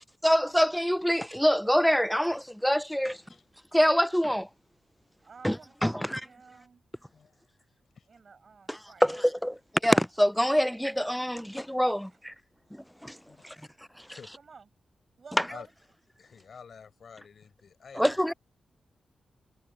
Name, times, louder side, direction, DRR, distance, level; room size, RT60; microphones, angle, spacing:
voice 1, 0.2-3.2 3.7-4.5 5.4-6.2 8.7-12.3 12.7-13.2 13.4-13.5 15.4-15.5 18.0-18.3, equal, ahead, 0.3 m, -25 dB
voice 2, 5.2-6.8 8.1-9.0 14.4-14.7 15.2-15.7 18.0-18.4, right 5 dB, 55° right, 7.2 m, -51 dB
voice 3, 13.3-13.7 14.1-14.3 15.5-15.7 16.2-18.2, left 6 dB, 65° left, 4.9 m, -49 dB
cardioid pair, 75°, 0 cm